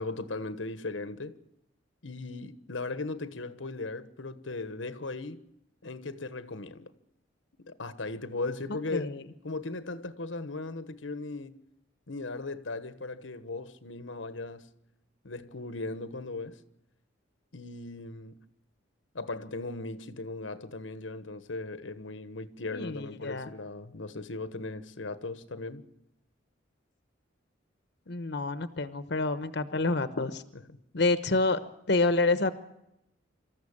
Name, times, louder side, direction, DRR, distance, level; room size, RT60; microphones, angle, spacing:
voice 1, 0.0-1.4 2.0-5.4 5.8-6.9 7.6-9.1 9.4-11.6 12.1-14.7 15.2-16.6 17.5-18.4 19.1-25.8 30.7-30.8, left 3 dB, 90° left, 1.3 m, -37 dB
voice 2, 8.7-9.2 22.7-23.5 28.1-30.4 30.9-31.6 31.9-32.5, left 3 dB, 60° left, 1.1 m, -28 dB
25.5 x 14.0 x 8.7 m
head